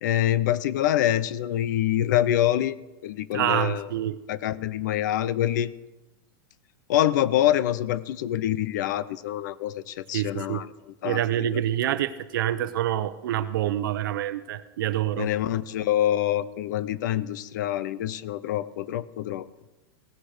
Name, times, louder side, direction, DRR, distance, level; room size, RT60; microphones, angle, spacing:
voice 1, 0.0-2.8 3.0-3.9 4.3-5.7 6.9-10.7 11.0-11.2 15.2-19.5, left 12 dB, 50° left, 18 dB, 0.6 m, -25 dB
voice 2, 3.3-4.2 10.1-10.6 11.0-15.3, right 12 dB, 55° right, 13 dB, 0.9 m, -27 dB
17.0 x 15.0 x 5.0 m, 1.1 s
supercardioid pair, 180°, 13 cm